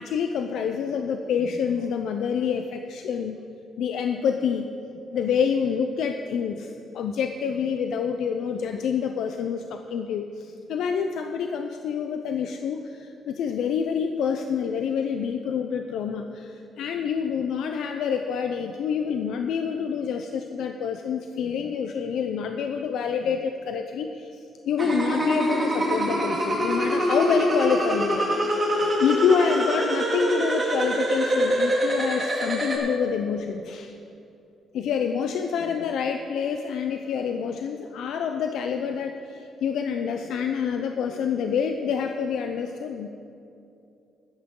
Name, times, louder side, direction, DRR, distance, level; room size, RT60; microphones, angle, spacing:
voice 1, 0.0-3.4 3.8-4.7 5.0-28.3 28.8-34.0 34.7-43.1, left 7 dB, 75° left, 6 dB, 0.5 m, -27 dB
sound 1, 24.8-32.8, right 1 dB, 20° right, 2.5 m, -24 dB
13.5 x 12.0 x 3.8 m, 2.7 s
cardioid pair, 125°, 0 cm